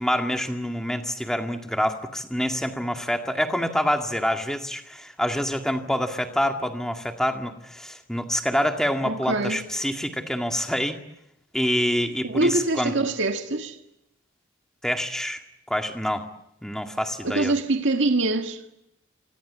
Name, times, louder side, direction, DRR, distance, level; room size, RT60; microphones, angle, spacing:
voice 1, 0.0-11.0 11.5-12.9 14.8-15.4 15.7-16.2 16.6-17.5, equal, 5° left, 2.0 m, -26 dB
voice 2, 9.0-9.6 12.2-13.8 17.2-18.6, right 2 dB, 70° right, 1.8 m, -24 dB
26.5 x 25.5 x 8.5 m
head